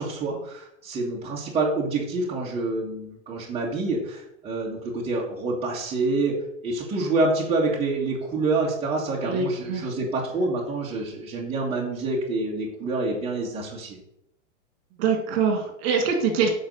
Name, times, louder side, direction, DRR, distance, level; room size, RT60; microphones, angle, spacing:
voice 1, 0.0-6.4 6.6-14.0, right 3 dB, 15° right, -4 dB, 1.9 m, -27 dB
voice 2, 9.2-9.9 15.0-16.5, right 5 dB, 50° right, 3 dB, 2.4 m, -24 dB
8.4 x 4.7 x 6.5 m, 0.76 s
hypercardioid pair, 150°, 39 cm